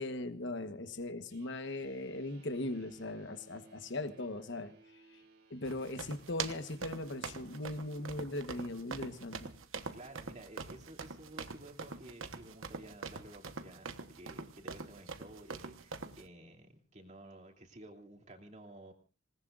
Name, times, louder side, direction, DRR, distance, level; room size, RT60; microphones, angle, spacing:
voice 1, 0.0-4.7 5.5-9.5, left 2 dB, 55° left, 9 dB, 1.2 m, -39 dB
sound 1, 1.3-8.7, right 3 dB, 50° right, 3.3 m, -62 dB
sound 2, 5.6-16.2, right 4 dB, 70° right, 1.2 m, -44 dB
voice 2, 9.9-18.9, right 1 dB, 35° right, 3 dB, 2.8 m, -53 dB
27.5 x 19.0 x 2.5 m, 0.33 s
head